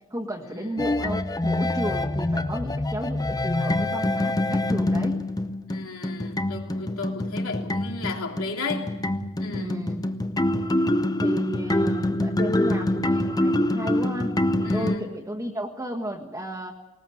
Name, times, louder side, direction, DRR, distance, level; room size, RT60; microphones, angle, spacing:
voice 1, 0.1-5.2 9.5-10.0 11.2-16.7, equal, 15° right, 1.5 m, -33 dB
sound 1, 0.8-15.0, left 1 dB, 15° left, 0.6 m, -25 dB
voice 2, 5.7-9.0 9.4-9.8 14.6-15.1, left 4 dB, 80° left, 3.2 m, -34 dB
20.0 x 19.5 x 7.8 m
head